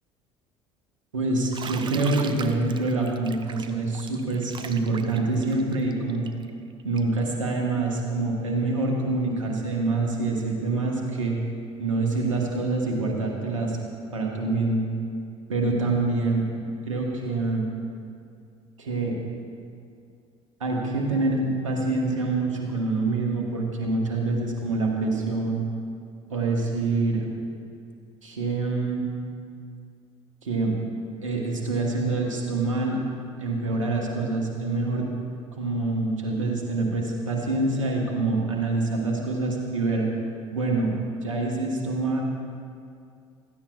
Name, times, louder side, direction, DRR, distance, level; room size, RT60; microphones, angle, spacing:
voice 1, 1.1-6.3 6.8-11.4 11.8-13.8 14.1-14.9 15.5-16.5 16.9-17.7 18.8-19.2 20.6-25.6 26.3-27.2 28.2-29.1 30.4-30.8 31.2-33.0 33.4-35.1 35.6-40.1 40.5-40.9 41.2-42.2, right 3 dB, 75° right, 0 dB, 1.3 m, -26 dB
Bathtub (filling or washing), 1.5-7.2, right 6 dB, 30° right, 0.6 m, -40 dB
16.0 x 13.0 x 2.4 m, 2.4 s
figure-of-eight pair, 60°, 16 cm